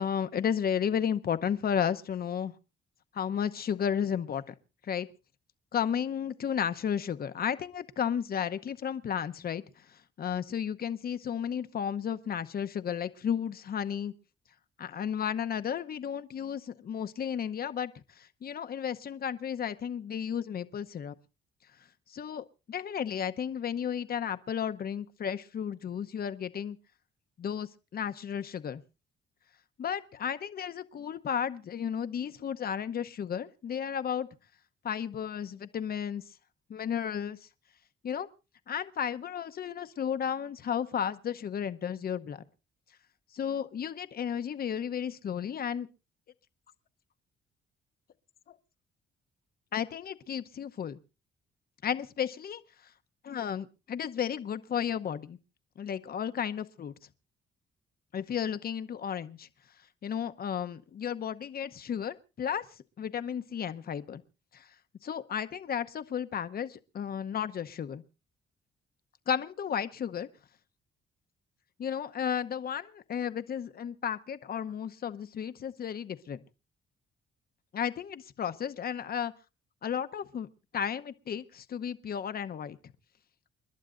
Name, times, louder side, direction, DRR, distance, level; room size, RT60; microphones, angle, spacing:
voice 1, 0.0-2.5 3.1-4.5 4.8-5.1 5.7-14.1 14.8-21.1 22.1-26.8 27.4-28.8 29.8-34.3 34.8-36.2 36.7-37.4 38.0-38.3 38.7-42.4 43.3-45.9 48.5-48.6 49.7-51.0 51.8-52.6 53.2-55.4 55.8-56.9 58.1-59.5 60.0-62.6 63.0-64.2 64.5-64.7 65.0-68.0 69.3-70.3 71.8-76.4 77.7-79.3 79.8-80.5 80.7-82.8, left 8 dB, 50° left, 0.9 m, -33 dB
29.0 x 11.5 x 2.5 m
cardioid pair, 90°, 20 cm